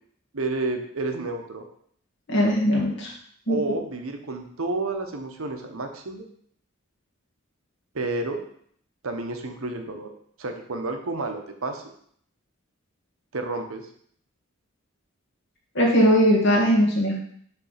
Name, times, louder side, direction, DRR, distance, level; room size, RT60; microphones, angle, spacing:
voice 1, 0.3-1.6 3.5-6.2 7.9-8.4 9.0-10.1 10.4-11.8 13.3-13.9, right 2 dB, 85° right, 5 dB, 0.9 m, -30 dB
voice 2, 2.3-3.1 3.5-3.8 15.8-17.1, equal, 60° left, -3 dB, 1.9 m, -20 dB
5.7 x 3.4 x 5.7 m, 0.63 s
head